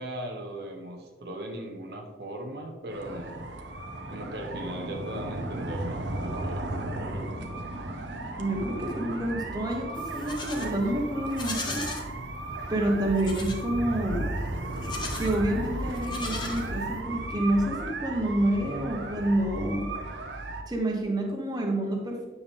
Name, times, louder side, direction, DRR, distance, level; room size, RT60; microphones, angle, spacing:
voice 1, 0.0-3.4 4.1-7.6, right 1 dB, 60° right, 2 dB, 1.0 m, -38 dB
house alarm, 2.9-20.6, right 1 dB, 85° right, 1.1 m, -35 dB
voice 2, 8.4-11.8 12.7-14.3 15.2-19.9 20.7-22.3, right 1 dB, 20° right, 0 dB, 1.3 m, -28 dB
Livestock farm animals working animals, 9.9-10.7 11.3-12.1 13.1-13.6 14.7-15.4 15.9-17.0, left 3 dB, 25° left, 1.2 m, -37 dB
9.7 x 6.9 x 3.5 m, 1.3 s
head